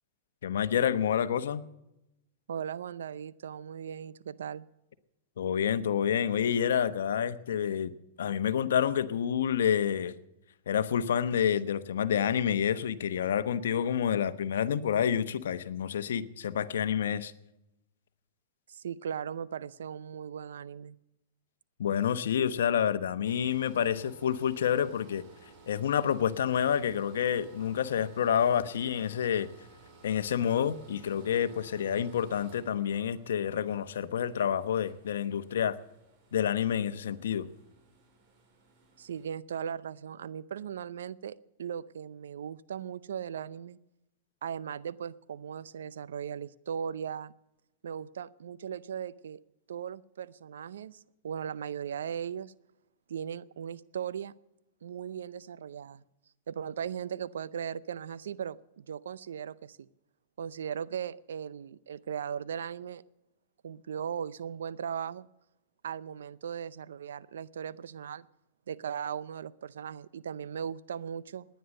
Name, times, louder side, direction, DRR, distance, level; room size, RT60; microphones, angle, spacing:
voice 1, 0.4-1.6 5.4-10.1 10.7-17.3 21.8-25.2 25.7-29.5 30.0-35.8 36.3-37.5, left 8 dB, 80° left, 13 dB, 1.0 m, -28 dB
voice 2, 2.5-4.7 18.7-21.0 39.0-43.8 44.4-47.3 47.8-49.4 49.7-52.5 53.1-54.3 54.8-56.0 56.5-59.9 60.4-63.0 63.6-65.3 65.8-68.3 68.7-71.5, right 8 dB, 85° right, 18 dB, 0.6 m, -38 dB
sound 1, 23.3-39.3, right 3 dB, 40° right, 4.7 m, -57 dB
18.5 x 10.0 x 6.5 m, 0.88 s
hypercardioid pair, 125°, 0 cm